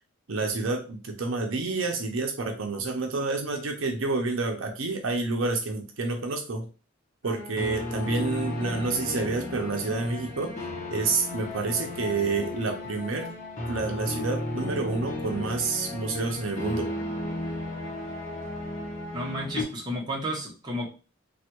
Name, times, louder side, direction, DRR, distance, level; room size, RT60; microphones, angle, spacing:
voice 1, 0.3-6.7 7.2-10.6 10.9-13.3 13.7-16.9, right 3 dB, 80° right, 4 dB, 0.6 m, -29 dB
sound 1, 7.2-19.6, left 1 dB, 40° left, 0.9 m, -34 dB
voice 2, 19.1-20.9, equal, 20° right, -3 dB, 0.9 m, -32 dB
3.3 x 2.3 x 2.9 m, 0.33 s
head